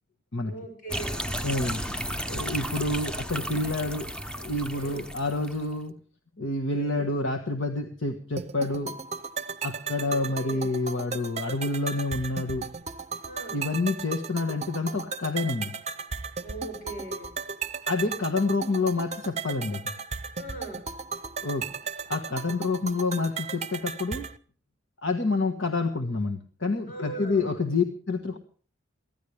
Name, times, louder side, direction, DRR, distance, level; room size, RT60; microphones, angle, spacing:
voice 1, 0.4-1.2 4.7-5.1 6.7-7.1 10.0-10.7 13.2-13.6 16.4-17.3 20.4-20.9 26.9-27.6, right 2 dB, 45° left, 3 dB, 7.0 m, -40 dB
sound 1, 0.9-5.7, equal, 5° left, 0.8 m, -34 dB
voice 2, 1.4-1.8 2.3-4.1 4.4-5.9 6.4-9.0 9.6-12.6 13.5-15.7 17.9-19.8 21.4-21.7 22.1-24.3 25.0-28.4, left 3 dB, 70° left, 4 dB, 1.5 m, -28 dB
sound 2, 8.4-24.4, right 5 dB, 35° right, 0.7 m, -36 dB
23.0 x 16.0 x 3.4 m, 0.42 s
head